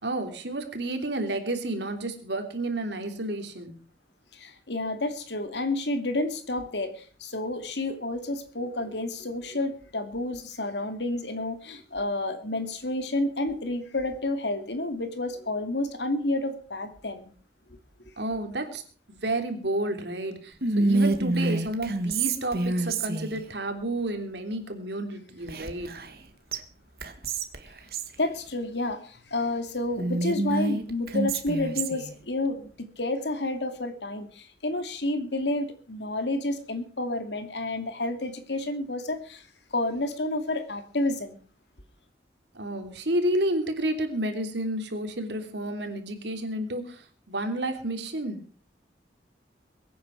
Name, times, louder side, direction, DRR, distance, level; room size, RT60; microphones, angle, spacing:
voice 1, 0.0-3.7 18.2-18.8 19.1-25.9 42.5-48.4, right 1 dB, 80° right, 3.2 m, -31 dB
voice 2, 4.3-17.3 28.2-41.4, left 2 dB, 80° left, 2.5 m, -30 dB
Whispering, 20.6-23.4 25.5-26.2 26.5-26.6 27.0-28.1 30.0-32.1, right 2 dB, 55° right, 1.7 m, -27 dB
22.5 x 9.4 x 4.6 m
head